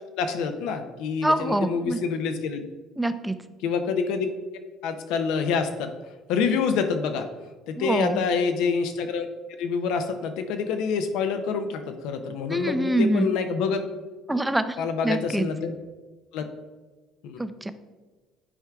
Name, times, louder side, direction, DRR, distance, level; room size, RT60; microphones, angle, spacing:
voice 1, 0.2-2.6 3.6-4.3 4.8-5.9 6.3-7.3 7.7-9.3 9.6-13.8 14.8-15.7 16.3-16.4 17.2-17.4, left 5 dB, 75° left, 7 dB, 0.6 m, -27 dB
voice 2, 1.2-2.0 3.0-3.4 7.8-8.3 12.5-13.3 14.3-15.5 17.4-17.7, right 1 dB, 10° right, 11 dB, 0.4 m, -25 dB
9.8 x 4.5 x 2.3 m, 1.3 s
supercardioid pair, 80°, 0 cm